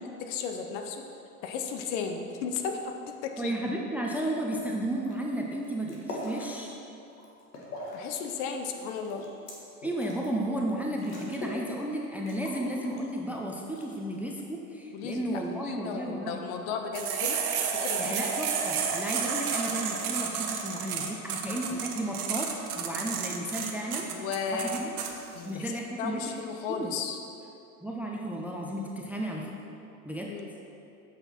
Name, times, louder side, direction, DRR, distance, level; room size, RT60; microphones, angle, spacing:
voice 1, 0.2-1.0 1.4-3.8 7.9-9.2 14.9-17.4 17.7-18.2 23.8-24.8 25.3-27.2 30.3-30.5, left 6 dB, 50° left, 5 dB, 0.9 m, -35 dB
voice 2, 3.4-6.8 9.8-16.4 18.0-22.5 22.8-24.1 24.5-24.9 25.4-26.4 26.7-26.9 27.8-29.6 30.0-30.3, right 1 dB, 5° right, -1 dB, 0.6 m, -33 dB
sound 1, 5.0-5.2 5.5-6.5 7.0-8.1 8.4-10.3 10.7-10.8 11.0-11.6 11.9-12.0 12.3-13.3 13.8-14.3 15.2-15.7, left 1 dB, 85° left, 1.7 m, -41 dB
sound 2, 16.9-25.1, right 6 dB, 70° right, 1.0 m, -31 dB
7.9 x 5.9 x 4.4 m, 2.8 s
hypercardioid pair, 90°, 46 cm